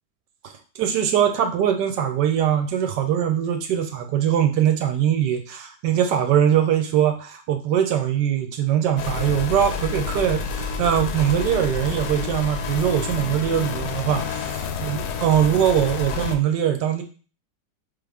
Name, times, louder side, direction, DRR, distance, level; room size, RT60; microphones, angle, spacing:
voice 1, 0.8-14.5 14.8-17.0, right 9 dB, 75° right, 6 dB, 1.1 m, -22 dB
sound 1, 9.0-16.4, left 5 dB, 70° left, 1.0 m, -29 dB
3.8 x 3.5 x 3.4 m, 0.37 s
omnidirectional pair, 2.0 m